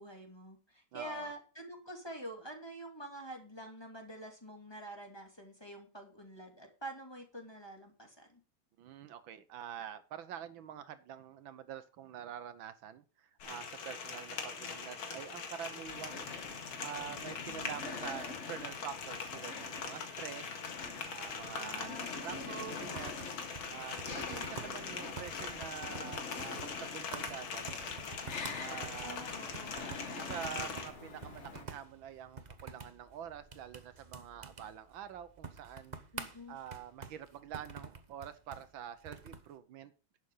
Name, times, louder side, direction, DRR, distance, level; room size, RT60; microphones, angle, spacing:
voice 1, 0.0-8.4 17.4-17.8 21.6-23.0 23.7-23.8 29.0-30.5 36.1-36.6, right 1 dB, 10° left, 2 dB, 2.6 m, -47 dB
voice 2, 0.9-1.3 8.8-16.3 16.8-20.6 21.1-21.9 22.2-23.3 23.7-27.6 28.6-29.3 30.1-36.0 36.5-39.9, right 9 dB, 75° right, 12 dB, 1.6 m, -46 dB
sound 1, 13.4-30.9, left 5 dB, 90° left, 2.6 m, -42 dB
sound 2, 15.8-31.6, left 4 dB, 35° left, 1.6 m, -47 dB
sound 3, 21.7-39.5, right 4 dB, 30° right, 0.8 m, -49 dB
11.0 x 8.0 x 5.5 m, 0.34 s
omnidirectional pair, 2.2 m